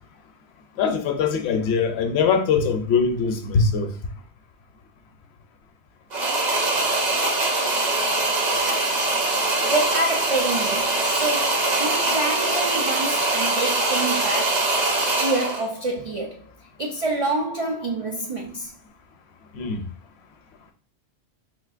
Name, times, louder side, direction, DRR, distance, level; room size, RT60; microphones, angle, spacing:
voice 1, 0.8-3.9 19.5-19.8, left 5 dB, 70° left, 0.8 m, -22 dB
sound 1, 6.1-15.7, right 2 dB, 45° right, 0.7 m, -23 dB
voice 2, 9.6-14.6 15.2-16.5 16.8-18.7, right 2 dB, 65° right, 0.3 m, -27 dB
3.8 x 2.6 x 2.4 m
omnidirectional pair, 1.2 m